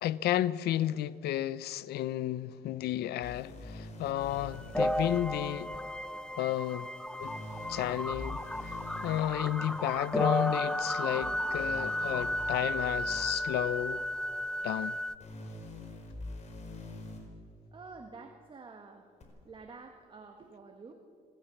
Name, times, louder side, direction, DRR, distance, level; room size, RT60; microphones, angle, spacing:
voice 1, 0.0-5.7 6.4-6.9 7.2-7.3 7.7-8.8 9.0-14.0 14.6-15.0, left 12 dB, 70° left, 0.7 m, -32 dB
sound 1, 3.2-5.2 7.2-9.2 11.2-13.2 15.2-17.2 19.2-19.3, left 2 dB, 40° left, 4.5 m, -44 dB
sound 2, 4.2-15.2, left 1 dB, 5° left, 0.8 m, -33 dB
voice 2, 17.7-19.1 19.4-20.9, right 4 dB, 30° right, 1.6 m, -49 dB
28.0 x 13.5 x 7.2 m
cardioid pair, 110°, 17 cm